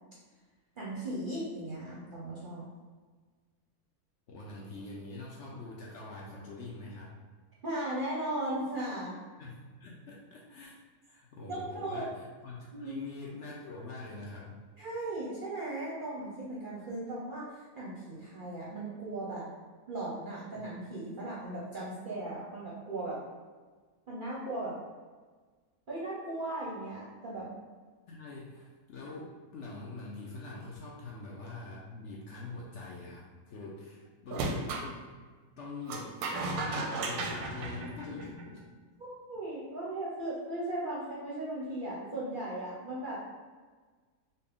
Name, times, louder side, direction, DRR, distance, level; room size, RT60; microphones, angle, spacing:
voice 1, 0.8-2.7 7.6-9.2 11.4-12.0 12.7-13.0 14.8-19.5 19.9-23.2 24.1-24.7 25.9-27.6 39.0-43.2, right 1 dB, 50° right, -6 dB, 0.7 m, -37 dB
voice 2, 4.3-7.1 9.4-10.8 11.1-14.6 20.5-20.6 28.1-35.1 35.6-36.1 36.9-38.6, left 3 dB, 65° left, -3 dB, 0.8 m, -44 dB
sound 1, 34.3-34.9 35.9-38.6, right 2 dB, 90° right, 1.1 m, -35 dB
4.1 x 2.1 x 3.5 m, 1.4 s
omnidirectional pair, 1.6 m